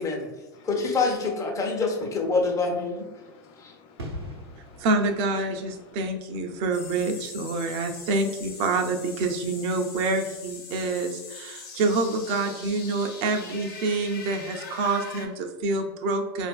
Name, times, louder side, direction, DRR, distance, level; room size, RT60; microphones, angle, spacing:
voice 1, 0.0-0.7 1.6-1.8 2.5-2.6 2.9-4.9 5.4-6.0 6.5-7.0, left 5 dB, 45° left, 6 dB, 0.5 m, -54 dB
voice 2, 0.6-3.0 3.6-3.7, left 3 dB, 25° left, 0 dB, 0.9 m, -26 dB
sound 1, 4.0-10.5 10.7-10.9, left 1 dB, 85° right, 0.8 m, -44 dB
voice 3, 4.8-16.5, right 3 dB, 50° right, 4 dB, 0.6 m, -27 dB
sound 2, 6.7-15.3, left 4 dB, 65° left, 1.1 m, -42 dB
4.2 x 2.5 x 2.3 m, 1.2 s
hypercardioid pair, 90°, 13 cm